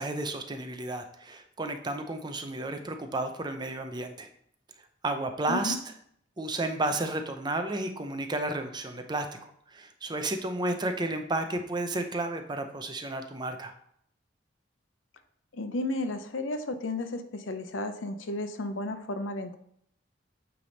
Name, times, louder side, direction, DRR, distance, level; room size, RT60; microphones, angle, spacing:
voice 1, 0.0-4.3 5.0-5.8 6.4-13.7, right 2 dB, 25° right, 6 dB, 0.6 m, -32 dB
voice 2, 15.5-19.6, left 2 dB, 90° left, 9 dB, 0.6 m, -33 dB
8.6 x 3.4 x 3.9 m, 0.69 s
head